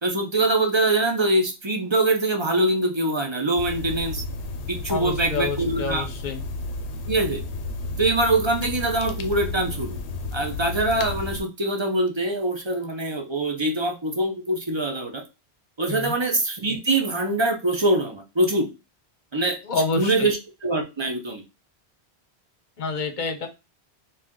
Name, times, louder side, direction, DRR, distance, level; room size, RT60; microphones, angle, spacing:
voice 1, 0.0-4.2 4.7-6.0 7.1-7.4 8.0-10.0 10.3-15.2 15.8-18.7 19.3-19.6 20.0-20.4 20.6-21.4, right 2 dB, 30° right, 3 dB, 0.6 m, -23 dB
sound 1, 3.6-11.4, left 2 dB, 85° left, 0.9 m, -32 dB
voice 2, 4.9-6.4 15.9-16.1 19.6-20.3 22.8-23.5, left 4 dB, 50° left, 5 dB, 0.8 m, -28 dB
3.3 x 2.7 x 3.6 m, 0.26 s
omnidirectional pair, 1.1 m